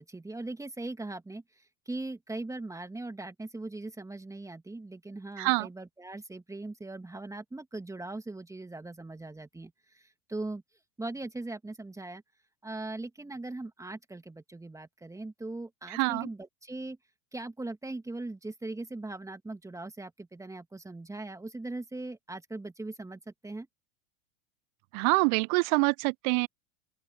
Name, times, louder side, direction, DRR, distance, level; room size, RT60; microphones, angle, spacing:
voice 1, 0.0-10.6 11.0-12.2 12.6-17.0 17.3-23.7, right 2 dB, 10° right, 2.3 m, -40 dB
voice 2, 5.4-5.7 15.9-16.3 24.9-26.5, right 38 dB, 35° right, 0.4 m, -26 dB
open air
figure-of-eight pair, 90°, 40 cm